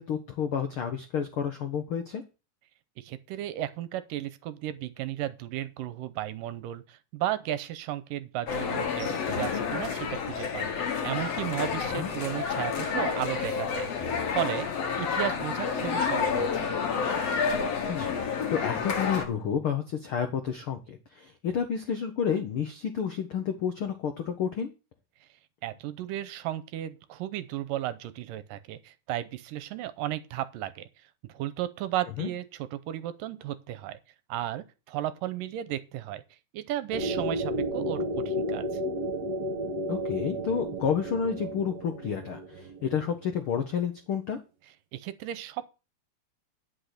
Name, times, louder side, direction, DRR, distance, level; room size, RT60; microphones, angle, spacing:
voice 1, 0.0-2.2 12.0-12.1 17.9-18.1 18.5-24.7 32.2-32.3 39.9-44.4, left 7 dB, 80° left, 1.2 m, -30 dB
voice 2, 3.0-14.7 15.0-16.8 25.6-30.9 31.3-34.0 34.3-36.2 36.5-38.7 44.9-45.7, right 13 dB, 80° right, 2.3 m, -34 dB
sound 1, 8.5-19.3, left 6 dB, 50° left, 2.6 m, -29 dB
sound 2, 36.9-43.4, equal, 60° right, 2.4 m, -32 dB
10.5 x 5.8 x 6.6 m
omnidirectional pair, 4.0 m